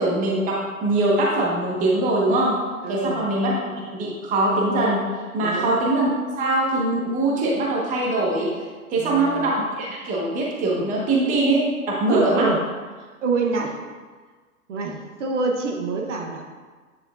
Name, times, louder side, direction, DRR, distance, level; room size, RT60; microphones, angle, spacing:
voice 1, 0.0-2.6 2.9-3.6 3.9-5.1 5.3-8.5 8.9-12.5, right 2 dB, 20° right, -3 dB, 1.1 m, -22 dB
voice 2, 2.8-3.3 5.4-5.8 8.9-9.5 12.1-12.6 13.2-13.8 14.7-16.5, right 3 dB, 55° right, 1 dB, 1.0 m, -26 dB
9.4 x 4.4 x 2.4 m, 1.4 s
hypercardioid pair, 125°, 43 cm